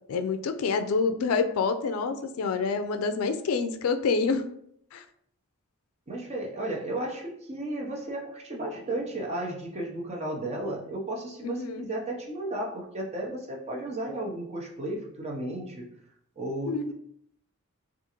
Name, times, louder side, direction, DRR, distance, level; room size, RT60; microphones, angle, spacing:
voice 1, 0.1-4.5 4.9-5.0 11.4-11.9 16.7-16.9, left 4 dB, 80° left, 8 dB, 0.3 m, -27 dB
voice 2, 6.1-15.8 16.4-16.9, right 1 dB, 30° right, -1 dB, 0.6 m, -34 dB
3.6 x 2.4 x 2.9 m, 0.69 s
head